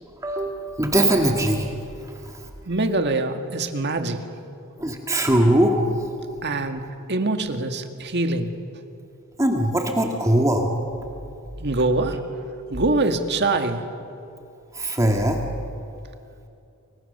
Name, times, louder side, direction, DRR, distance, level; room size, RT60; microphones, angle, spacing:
voice 1, 0.2-1.7 4.8-5.8 9.4-10.7 14.7-15.4, right 1 dB, 15° right, 2 dB, 1.9 m, -20 dB
voice 2, 2.7-4.2 6.4-6.8 7.1-8.5 11.6-12.2 12.7-13.8, right 2 dB, 55° right, 6 dB, 1.9 m, -24 dB
29.0 x 24.5 x 6.8 m, 2.6 s
head